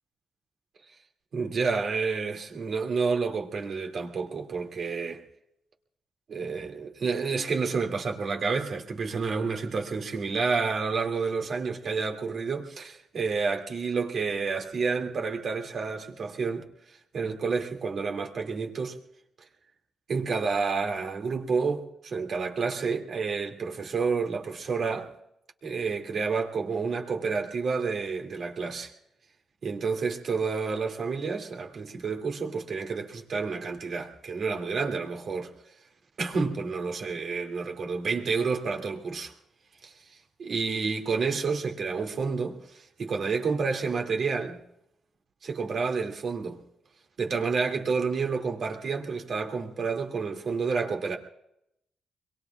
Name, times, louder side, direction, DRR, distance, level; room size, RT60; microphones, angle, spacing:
voice 1, 1.3-5.2 6.3-16.7 17.1-19.0 20.1-25.1 25.6-28.9 29.6-35.5 36.2-39.3 39.8-39.9 40.4-44.6 45.4-46.6 47.2-51.2, right 4 dB, 60° right, 2.4 m, -29 dB
26.5 x 22.5 x 2.4 m
cardioid pair, 75°, 0 cm